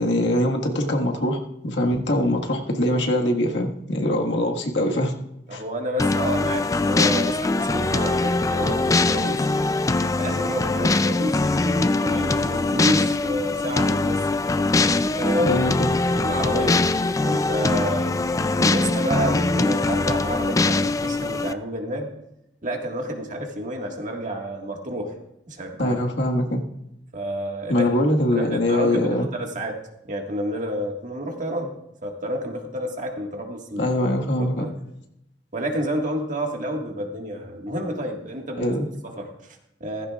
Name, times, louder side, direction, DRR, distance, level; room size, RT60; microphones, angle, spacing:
voice 1, 0.0-5.2 5.5-5.6 15.4-15.9 25.8-26.6 27.7-29.3 33.8-34.7 38.6-38.9, left 1 dB, 80° left, 1 dB, 1.7 m, -23 dB
voice 2, 5.5-9.5 9.9-14.3 15.1-16.8 17.2-22.1 22.6-25.2 25.5-26.1 27.1-27.9 28.3-29.8 30.0-31.7 32.0-33.9 34.4-34.7 35.5-38.8 39.0-40.1, equal, 45° right, 2 dB, 1.7 m, -30 dB
sound 1, 6.0-21.5, left 3 dB, 20° left, 0.3 m, -22 dB
15.5 x 15.0 x 2.4 m, 0.82 s
head